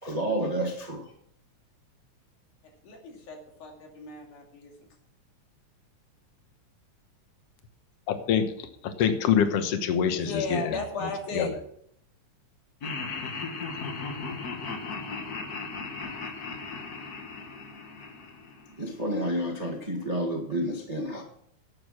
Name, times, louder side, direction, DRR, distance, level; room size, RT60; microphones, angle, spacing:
voice 1, 0.0-1.0 18.8-21.2, right 1 dB, 25° right, 1 dB, 0.9 m, -30 dB
voice 2, 2.8-4.9 10.1-11.5, left 3 dB, 90° left, 1 dB, 4.1 m, -35 dB
voice 3, 8.1-8.5 8.8-10.7 11.3-11.5, left 8 dB, 60° left, 8 dB, 2.0 m, -25 dB
Laughter, 12.8-19.0, left 4 dB, 45° left, 1.3 m, -37 dB
11.0 x 8.5 x 6.1 m, 0.68 s
omnidirectional pair, 3.4 m